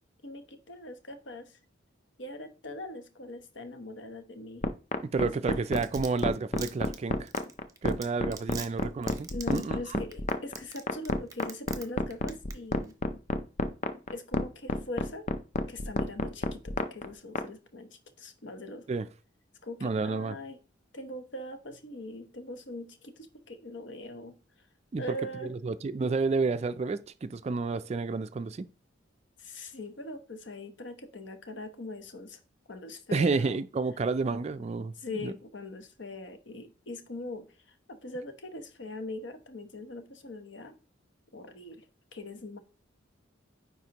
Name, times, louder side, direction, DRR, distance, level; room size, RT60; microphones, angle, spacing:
voice 1, 0.2-1.6 2.2-4.6 5.5-5.6 9.3-12.9 14.1-15.2 15.7-17.9 18.2-18.9 19.6-20.6 20.9-24.3 25.0-25.5 29.4-32.4 32.7-33.6 35.0-40.7 41.3-41.8 42.1-42.6, left 1 dB, 65° left, 0.9 m, -41 dB
sound 1, 4.6-17.5, left 2 dB, 35° left, 0.5 m, -29 dB
voice 2, 5.1-7.3 7.8-10.0 18.9-19.1 19.8-20.3 24.9-25.2 25.5-28.7 33.1-34.9 35.2-35.3, right 4 dB, 30° right, 0.3 m, -30 dB
Domestic sounds home sounds, 5.5-11.8 12.1-12.5 12.8-12.9, right 6 dB, 15° right, 0.8 m, -42 dB
9.3 x 4.2 x 2.9 m
head